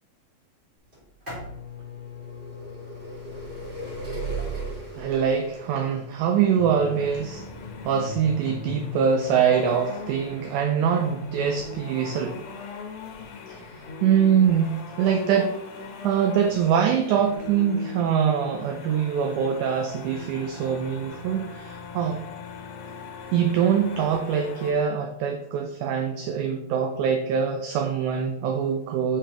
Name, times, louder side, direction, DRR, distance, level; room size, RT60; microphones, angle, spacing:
sound 1, 0.9-12.6 13.4-13.5 14.4-14.5 14.7-14.8, right 1 dB, 20° right, 1.8 m, -38 dB
voice 1, 5.0-7.4 7.8-12.4 13.5-13.6 14.0-15.5 16.0-22.2 23.3-29.2, right 7 dB, 80° right, 4 dB, 1.8 m, -23 dB
sound 2, 6.6-24.7, left 4 dB, 75° left, 2.3 m, -39 dB
9.9 x 3.7 x 2.9 m, 0.82 s
omnidirectional pair, 4.0 m